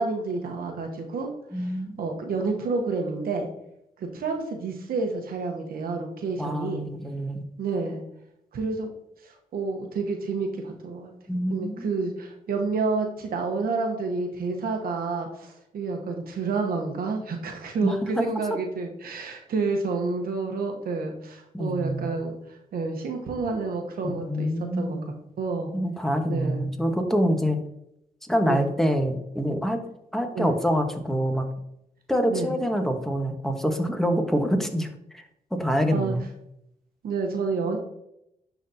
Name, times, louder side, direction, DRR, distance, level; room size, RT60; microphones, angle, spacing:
voice 1, 0.0-3.5 4.0-6.8 7.6-8.0 8.5-8.9 9.2-11.1 11.5-22.4 22.7-25.0 25.4-25.7 26.3-26.7 28.4-28.6 30.3-30.6 32.3-32.5 35.9-36.2 37.0-37.8, right 4 dB, 75° right, 3 dB, 1.0 m, -29 dB
voice 2, 1.5-2.0 6.4-7.5 11.3-11.9 17.8-18.2 21.5-22.2 24.0-25.1 25.7-27.6 28.3-29.8 30.1-31.5 32.1-34.9 35.1-35.2 35.6-36.2, equal, ahead, 5 dB, 1.2 m, -26 dB
11.0 x 4.0 x 2.8 m, 0.79 s
cardioid pair, 60°, 15 cm